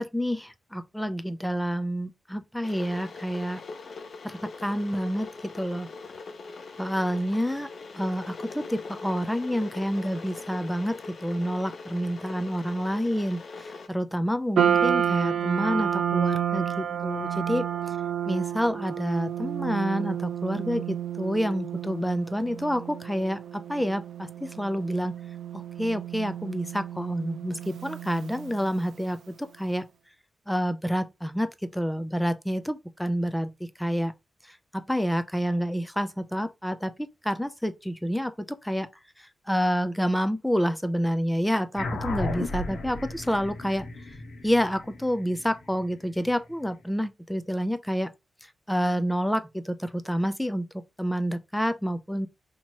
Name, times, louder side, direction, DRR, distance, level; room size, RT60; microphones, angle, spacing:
voice 1, 0.0-3.6 4.2-5.9 6.8-7.7 7.9-17.7 18.3-25.2 25.5-29.9 30.5-34.1 34.5-36.9 37.2-38.9 39.2-44.1 44.4-48.1 48.7-52.3, equal, 5° left, 0.4 m, -28 dB
Water / Boiling, 2.6-13.9, left 4 dB, 55° left, 0.5 m, -41 dB
sound 1, 14.6-29.0, right 9 dB, 80° right, 0.4 m, -30 dB
sound 2, 41.8-46.5, left 2 dB, 75° left, 1.1 m, -35 dB
2.9 x 2.8 x 4.4 m
wide cardioid pair, 140°, 0 cm